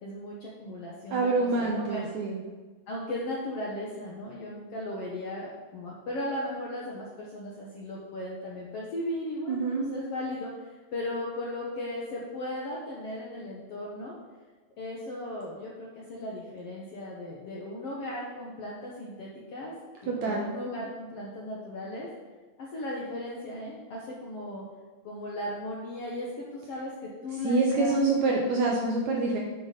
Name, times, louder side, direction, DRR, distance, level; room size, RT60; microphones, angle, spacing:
voice 1, 0.0-2.1 2.9-14.2 14.8-19.7 20.0-22.1 22.6-24.6 25.0-28.0 28.3-28.4, left 1 dB, 65° left, -4 dB, 1.5 m, -36 dB
voice 2, 1.1-2.4 9.5-9.9 20.1-20.5 27.4-29.4, right 3 dB, 70° right, -1 dB, 1.8 m, -26 dB
8.3 x 5.8 x 5.1 m, 1.3 s
omnidirectional pair, 4.2 m